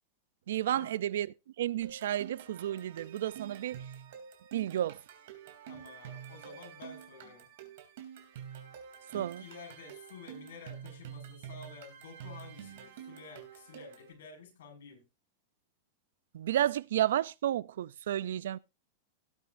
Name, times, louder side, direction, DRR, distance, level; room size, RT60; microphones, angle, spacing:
voice 1, 0.5-1.3 1.6-3.8 4.5-5.0 9.1-9.4 16.3-18.6, right 12 dB, 75° right, 0.5 m, -31 dB
sound 1, 1.8-14.1, right 8 dB, 55° right, 3.1 m, -48 dB
voice 2, 5.7-7.5 9.1-15.0, left 5 dB, 85° left, 5.7 m, -51 dB
18.5 x 8.3 x 2.6 m
supercardioid pair, 175°, 0 cm